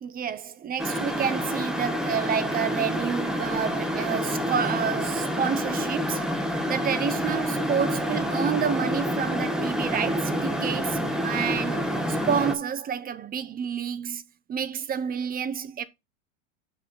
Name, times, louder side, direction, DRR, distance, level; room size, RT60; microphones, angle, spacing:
voice 1, 0.0-6.3 6.7-14.2 14.5-15.8, right 8 dB, 20° right, 0.7 m, -29 dB
sound 1, 0.8-12.6, equal, ahead, 1.2 m, -28 dB
6.2 x 5.0 x 5.6 m
hypercardioid pair, 115°, 40 cm